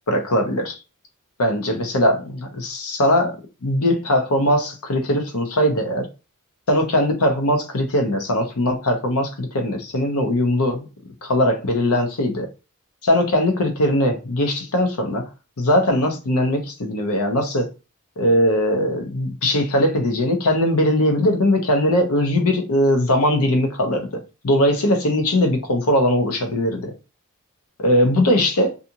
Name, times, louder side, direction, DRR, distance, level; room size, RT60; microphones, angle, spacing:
voice 1, 0.1-0.8 1.4-3.4 3.6-6.1 6.7-10.9 11.2-12.5 13.0-15.3 15.6-17.7 18.2-26.9 27.8-28.7, left 1 dB, 70° left, 0.8 m, -20 dB
2.5 x 2.4 x 2.8 m
head